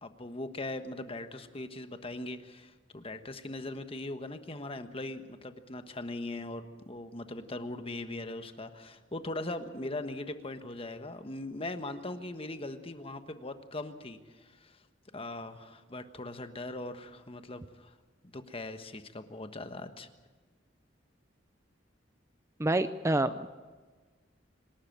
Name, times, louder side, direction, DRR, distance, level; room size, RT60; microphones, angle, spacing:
voice 1, 0.0-14.8 15.1-18.0 18.2-20.1, left 2 dB, 30° left, 8 dB, 1.3 m, -40 dB
voice 2, 22.6-23.5, right 2 dB, 15° right, 11 dB, 0.5 m, -27 dB
26.5 x 12.5 x 8.9 m, 1.3 s
head